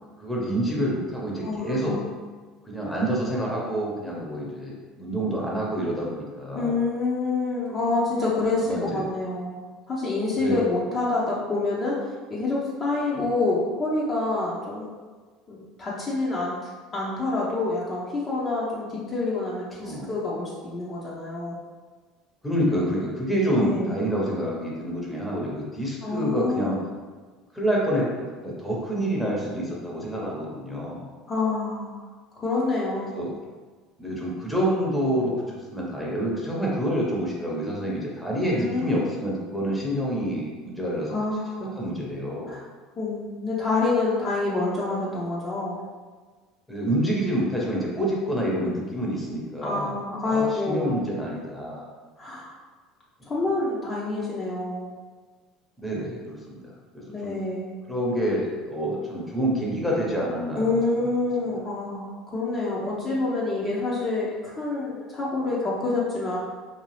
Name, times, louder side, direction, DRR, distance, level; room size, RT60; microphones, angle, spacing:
voice 1, 0.2-2.0 2.6-6.8 8.6-9.0 10.3-10.5 13.1-13.3 19.8-20.1 22.4-26.8 27.5-31.1 33.1-33.3 34.0-41.1 41.7-42.6 46.7-49.9 50.2-51.8 55.8-56.6 56.9-57.3 57.9-60.8, equal, 5° left, -4 dB, 0.9 m, -27 dB
voice 2, 1.4-2.1 6.5-9.6 9.9-11.9 12.3-14.9 15.5-21.6 23.6-24.0 26.0-26.8 31.3-32.1 32.4-33.2 38.5-39.1 41.1-41.6 42.5-42.6 43.0-45.8 49.6-51.0 52.2-52.5 53.3-54.9 57.1-57.8 60.5-66.4, left 3 dB, 30° left, -6 dB, 0.7 m, -27 dB
2.7 x 2.3 x 3.2 m, 1.4 s
hypercardioid pair, 80°, 0 cm